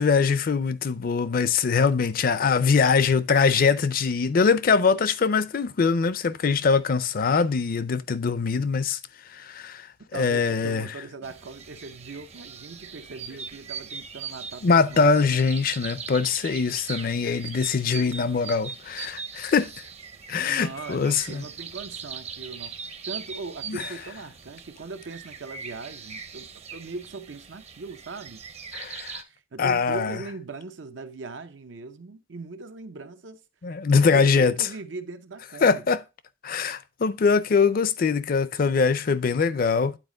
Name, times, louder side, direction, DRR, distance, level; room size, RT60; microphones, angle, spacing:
voice 1, 0.0-9.0 9.3-10.9 14.6-19.7 20.3-21.4 23.7-23.8 28.7-29.2 29.6-30.2 33.6-34.5 35.6-36.0 36.4-40.0, left 5 dB, 50° left, 0.5 m, -22 dB
voice 2, 10.1-15.4 17.7-17.9 20.4-22.7 23.1-28.4 29.2-33.4 33.9-35.9, right 3 dB, 90° right, 0.7 m, -39 dB
sound 1, 11.2-29.2, right 6 dB, 35° right, 0.6 m, -40 dB
9.1 x 4.1 x 3.8 m
head